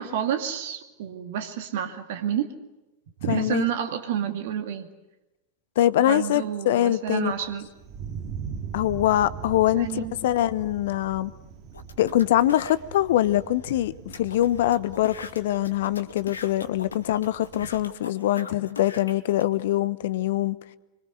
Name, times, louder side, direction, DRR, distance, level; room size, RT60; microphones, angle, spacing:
voice 1, 0.0-2.5 3.2-4.9 6.1-7.7 9.7-10.1, right 9 dB, 55° right, 2.2 m, -29 dB
voice 2, 3.3-3.6 5.8-7.3 8.7-11.3 12.0-20.6, left 13 dB, 55° left, 1.1 m, -23 dB
Thunder, 7.3-17.9, right 6 dB, 40° right, 2.5 m, -41 dB
sound 1, 11.7-12.8 13.4-13.5 13.7-13.8 14.1-19.5, left 5 dB, 70° left, 2.3 m, -41 dB
26.0 x 24.5 x 8.2 m
figure-of-eight pair, 90°, 0 cm